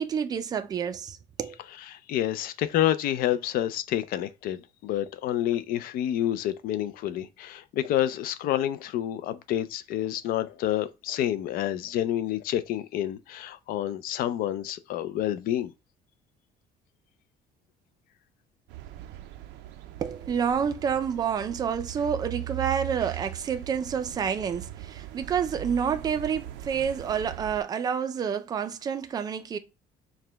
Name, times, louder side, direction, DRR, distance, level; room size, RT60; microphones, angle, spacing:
voice 1, 0.0-1.6 20.0-29.6, right 7 dB, 20° right, 0.4 m, -29 dB
voice 2, 1.9-15.7, left 12 dB, 55° left, 0.4 m, -28 dB
sound 1, 18.7-27.6, right 15 dB, 85° right, 0.5 m, -40 dB
4.8 x 2.2 x 3.3 m
cardioid pair, 165°, 17 cm